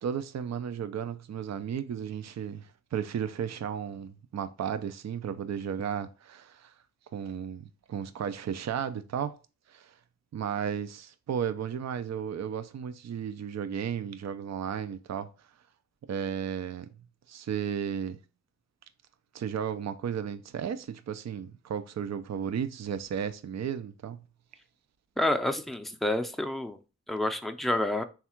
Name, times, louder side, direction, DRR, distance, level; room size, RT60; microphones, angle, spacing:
voice 1, 0.0-6.7 7.1-9.3 9.7-9.9 10.3-15.3 16.1-16.9 17.3-18.2 19.3-24.2, right 8 dB, 60° right, 0.4 m, -34 dB
voice 2, 25.2-26.8 27.1-28.0, left 1 dB, ahead, 0.5 m, -28 dB
3.4 x 2.4 x 4.3 m
cardioid pair, 40°, 31 cm